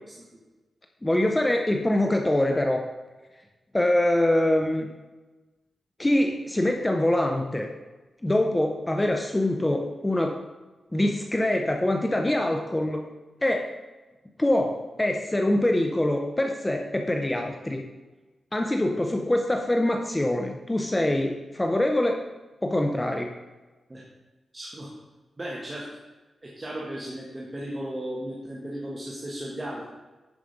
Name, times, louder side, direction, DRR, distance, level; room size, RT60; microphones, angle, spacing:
voice 1, 1.0-2.8 3.7-4.9 6.0-7.7 8.2-10.4 10.9-13.0 13.4-13.7 14.4-17.8 18.5-22.2 22.6-23.3, left 1 dB, 15° left, 3 dB, 0.6 m, -24 dB
voice 2, 24.5-24.9 25.4-25.9 26.4-29.9, right 1 dB, 20° right, -4 dB, 1.4 m, -35 dB
9.7 x 4.9 x 5.1 m, 1.2 s
wide cardioid pair, 125°, 0 cm